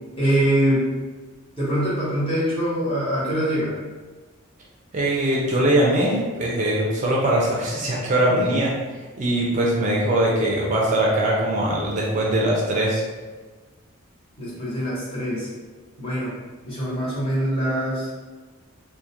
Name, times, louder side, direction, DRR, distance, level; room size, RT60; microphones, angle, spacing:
voice 1, 0.2-0.9 1.6-3.7 8.3-8.4 14.4-15.5 16.0-16.3 16.7-18.1, right 1 dB, 25° left, -8 dB, 0.8 m, -23 dB
voice 2, 4.9-8.7 9.2-13.0, right 1 dB, 35° right, -4 dB, 0.4 m, -21 dB
2.3 x 2.1 x 2.8 m, 1.3 s
head